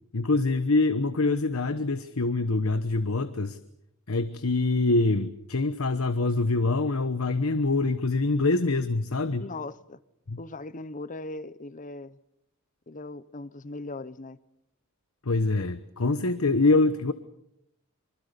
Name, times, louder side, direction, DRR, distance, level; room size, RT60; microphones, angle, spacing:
voice 1, 0.1-3.6 4.1-9.4 10.3-10.4 15.2-17.1, left 3 dB, 75° left, 1.1 m, -25 dB
voice 2, 9.4-10.0 10.4-12.2 12.9-14.4, left 2 dB, 35° left, 0.9 m, -39 dB
25.5 x 24.5 x 6.9 m
head